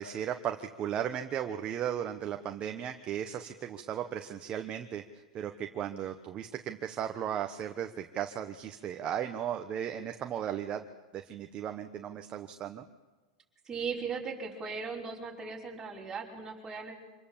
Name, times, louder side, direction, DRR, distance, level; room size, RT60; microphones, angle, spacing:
voice 1, 0.0-5.0 5.3-10.8 11.1-12.8, right 9 dB, 30° right, 6 dB, 1.2 m, -36 dB
voice 2, 13.6-16.9, right 5 dB, 15° right, -3 dB, 5.6 m, -38 dB
26.5 x 20.0 x 7.4 m, 1.2 s
hypercardioid pair, 120°, 3 cm